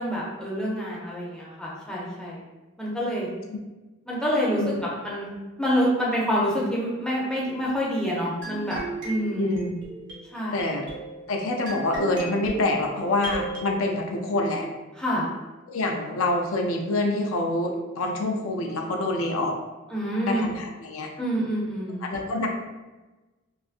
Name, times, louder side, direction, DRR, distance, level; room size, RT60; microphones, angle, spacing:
voice 1, 0.0-2.4 2.8-3.3 4.1-5.3 5.6-9.5 10.3-10.8 15.0-15.3 19.9-20.5 21.2-22.0, equal, 5° left, -7 dB, 0.4 m, -27 dB
sound 1, 8.4-13.7, right 3 dB, 60° right, 0.8 m, -37 dB
voice 2, 9.4-9.7 10.5-10.9 11.3-14.7 15.7-19.5 20.3-21.1 22.0-22.5, left 2 dB, 90° left, 2 dB, 0.4 m, -26 dB
2.5 x 2.4 x 2.4 m, 1.2 s
head